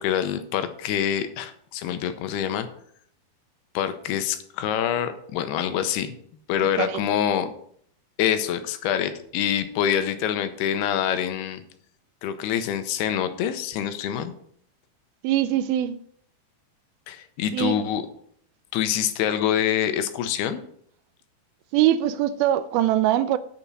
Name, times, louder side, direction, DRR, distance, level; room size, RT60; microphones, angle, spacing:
voice 1, 0.0-2.7 3.7-6.2 6.5-7.5 8.2-11.6 12.2-14.3 17.1-18.0 18.7-20.6, left 9 dB, 85° left, 2.7 m, -25 dB
voice 2, 15.2-16.0 17.5-17.8 21.7-23.4, right 12 dB, 80° right, 2.2 m, -22 dB
9.2 x 7.0 x 6.1 m
omnidirectional pair, 4.6 m